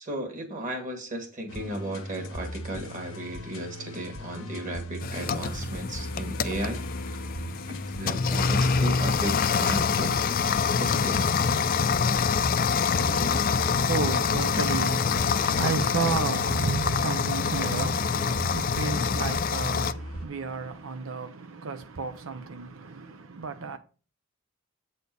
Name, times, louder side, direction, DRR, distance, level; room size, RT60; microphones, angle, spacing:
voice 1, 0.0-6.8 7.7-10.2 10.8-11.2, right 1 dB, 40° right, 1.9 m, -35 dB
sound 1, 1.5-20.3, equal, 85° left, 1.2 m, -38 dB
sound 2, 5.0-19.9, left 6 dB, 45° left, 0.4 m, -26 dB
voice 2, 13.0-23.8, right 4 dB, 85° right, 0.6 m, -32 dB
8.2 x 4.3 x 5.3 m
head